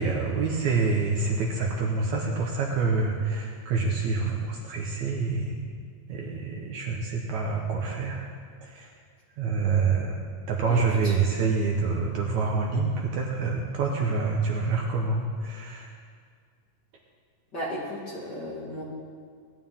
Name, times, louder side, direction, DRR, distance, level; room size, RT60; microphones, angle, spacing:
voice 1, 0.0-5.6 6.1-8.3 8.6-8.9 9.4-10.1 10.5-15.9, right 4 dB, 65° right, -1 dB, 2.1 m, -27 dB
voice 2, 10.6-11.1 17.5-18.8, equal, 35° left, -6 dB, 2.1 m, -35 dB
19.5 x 11.0 x 3.6 m, 2.1 s
omnidirectional pair, 4.1 m